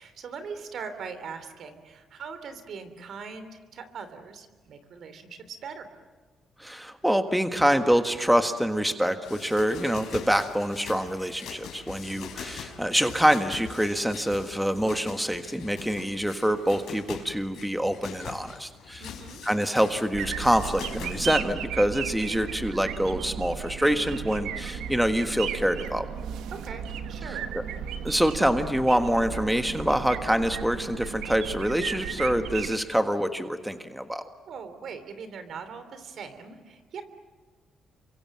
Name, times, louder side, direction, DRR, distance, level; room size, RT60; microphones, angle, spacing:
voice 1, 0.0-5.9 19.0-19.4 26.5-27.5 34.5-37.0, right 5 dB, 65° right, 10 dB, 3.1 m, -41 dB
voice 2, 6.6-19.0 19.4-26.1 28.0-34.3, equal, 5° right, 7 dB, 1.5 m, -25 dB
sound 1, 9.2-21.4, left 7 dB, 80° left, 4.6 m, -43 dB
sound 2, 20.1-32.8, right 8 dB, 90° right, 1.6 m, -35 dB
28.5 x 24.0 x 7.6 m, 1.4 s
cardioid pair, 90°, 0 cm